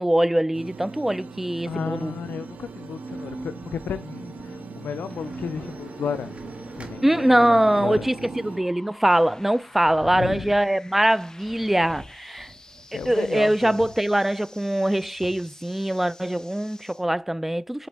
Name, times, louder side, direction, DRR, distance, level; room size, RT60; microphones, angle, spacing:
voice 1, 0.0-2.1 7.0-12.5 13.1-17.9, right 1 dB, 10° right, 0.3 m, -22 dB
sound 1, 0.5-8.6, right 4 dB, 85° right, 0.9 m, -38 dB
voice 2, 1.6-8.1 10.0-10.5 12.9-13.9, left 7 dB, 85° left, 0.4 m, -33 dB
sound 2, 3.1-17.1, left 1 dB, 25° left, 0.9 m, -49 dB
sound 3, 5.1-7.5 8.1-8.2 10.2-10.6 11.0-14.1 14.4-14.5 14.7-15.4, right 2 dB, 45° right, 1.6 m, -49 dB
8.2 x 4.0 x 4.6 m
cardioid pair, 50°, 3 cm